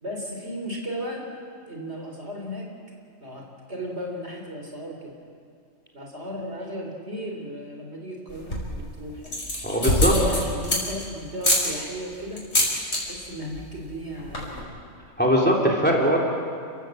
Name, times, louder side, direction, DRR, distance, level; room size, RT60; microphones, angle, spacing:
voice 1, 0.0-1.3 1.7-2.7 3.2-5.0 5.9-9.4 9.8-12.4 12.9-14.8, equal, 55° right, 1 dB, 3.9 m, -35 dB
sound 1, 8.3-8.8 9.2-11.0 11.4-11.7 12.4-13.0 13.3-13.6 13.9-14.0 14.2-14.6, left 1 dB, 60° left, 5.5 m, -24 dB
voice 2, 9.6-10.1 15.2-16.2, equal, 5° left, -2 dB, 3.2 m, -20 dB
30.0 x 15.0 x 7.8 m, 2.3 s
omnidirectional pair, 1.3 m